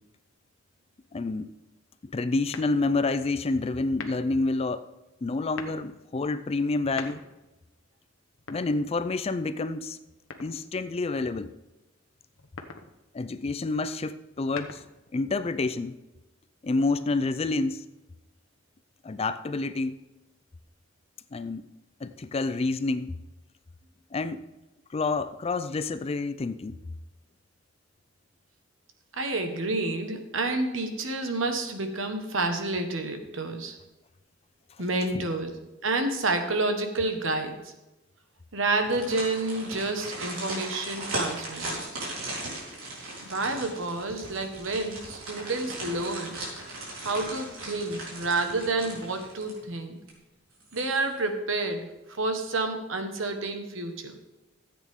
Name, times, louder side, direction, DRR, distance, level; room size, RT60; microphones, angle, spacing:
voice 1, 1.1-1.5 2.0-4.9 5.2-7.2 8.5-10.0 10.4-11.5 13.1-14.8 15.1-16.0 16.6-17.9 19.0-20.0 21.3-21.6 22.0-23.2 24.1-24.4 24.9-26.8 35.1-35.3, left 3 dB, 30° left, 12 dB, 0.4 m, -28 dB
sound 1, 2.5-3.1 3.9-4.4 5.3-5.9 6.7-7.5 8.3-9.2 10.3-10.9 12.3-12.9 14.2-15.1, left 4 dB, 70° left, 1.0 m, -42 dB
voice 2, 29.1-33.7 34.8-37.7 38.5-42.0 43.2-46.4 47.0-50.0 50.7-54.2, right 2 dB, 65° right, 6 dB, 1.3 m, -29 dB
sound 2, 38.8-49.7 50.1-50.2 50.6-51.3 51.6-51.7, right 2 dB, 85° right, 3.8 m, -38 dB
14.0 x 8.5 x 3.6 m, 1.0 s
head